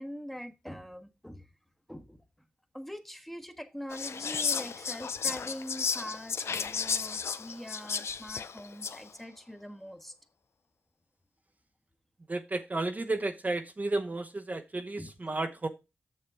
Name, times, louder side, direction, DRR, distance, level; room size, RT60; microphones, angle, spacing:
voice 1, 0.0-1.5 1.9-2.2 2.7-10.2 15.0-15.1, equal, 5° left, 1.2 m, -43 dB
Whispering, 3.9-9.1, left 6 dB, 70° left, 0.5 m, -33 dB
voice 2, 12.3-15.7, right 2 dB, 35° right, 0.8 m, -32 dB
6.6 x 6.5 x 4.7 m
cardioid pair, 45°, 5 cm